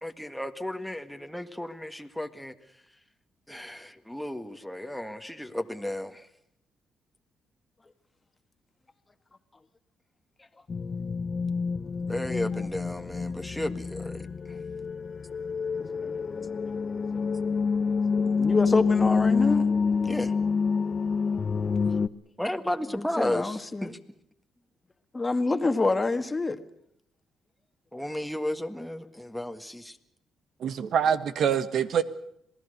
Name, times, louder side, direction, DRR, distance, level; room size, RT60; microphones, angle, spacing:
voice 1, 0.0-2.5 3.5-6.3 12.1-14.6 20.0-20.3 22.4-24.0 27.9-30.0, left 1 dB, 5° left, 1.7 m, -34 dB
sound 1, 10.7-22.1, left 5 dB, 40° left, 0.8 m, -27 dB
voice 2, 18.4-19.6 22.9-23.9 25.1-26.6, left 3 dB, 20° left, 1.7 m, -26 dB
voice 3, 30.6-32.0, right 8 dB, 65° right, 1.4 m, -25 dB
27.0 x 18.5 x 6.7 m
cardioid pair, 90°, 0 cm